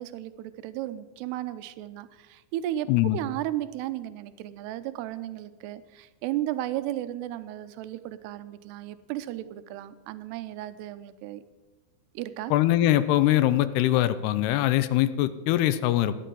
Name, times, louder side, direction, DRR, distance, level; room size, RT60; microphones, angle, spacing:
voice 1, 0.0-11.4 12.1-12.5, right 13 dB, 85° right, 12 dB, 2.8 m, -34 dB
voice 2, 2.9-3.2 12.5-16.1, left 14 dB, 80° left, 13 dB, 2.7 m, -22 dB
14.5 x 10.0 x 7.6 m, 1.2 s
omnidirectional pair, 4.7 m